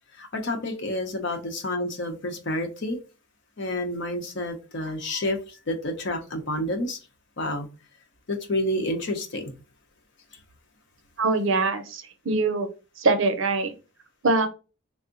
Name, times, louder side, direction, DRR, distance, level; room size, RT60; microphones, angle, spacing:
voice 1, 0.2-3.0 3.6-5.4 5.7-7.0 7.4-7.7 8.3-9.5, left 1 dB, 50° left, 0.7 m, -29 dB
voice 2, 11.2-12.7 13.0-13.7 14.2-14.5, right 3 dB, 60° right, 0.6 m, -23 dB
3.4 x 2.0 x 3.8 m
head